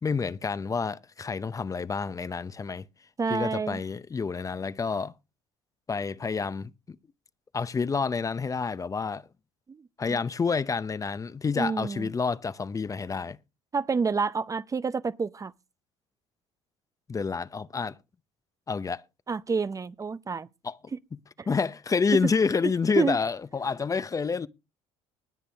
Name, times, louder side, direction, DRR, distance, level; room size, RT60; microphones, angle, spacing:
voice 1, 0.0-2.8 3.3-5.1 5.9-6.7 7.5-9.2 10.0-13.4 17.1-18.0 18.7-19.0 20.6-20.8 21.5-24.5, left 5 dB, 25° left, 0.7 m, -28 dB
voice 2, 3.2-3.8 9.7-10.2 11.5-12.1 13.7-15.5 19.3-20.5 20.9-21.0 21.4-21.5 22.1-22.3 23.0-23.2, right 5 dB, 25° right, 0.6 m, -29 dB
20.0 x 6.8 x 3.4 m
hypercardioid pair, 75°, 13 cm